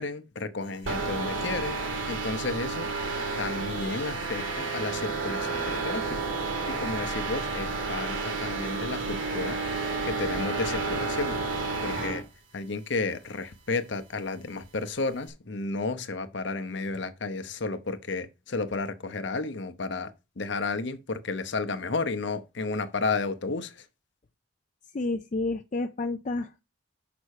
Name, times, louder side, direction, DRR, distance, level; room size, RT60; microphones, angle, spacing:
voice 1, 0.0-1.8 2.1-2.9 3.4-6.2 6.7-11.4 11.8-12.2 12.5-23.9, left 3 dB, 60° left, 0.8 m, -32 dB
sound 1, 0.9-12.2, right 3 dB, 70° right, 1.8 m, -31 dB
voice 2, 24.9-26.6, left 2 dB, 35° left, 0.4 m, -30 dB
6.0 x 5.4 x 6.5 m
head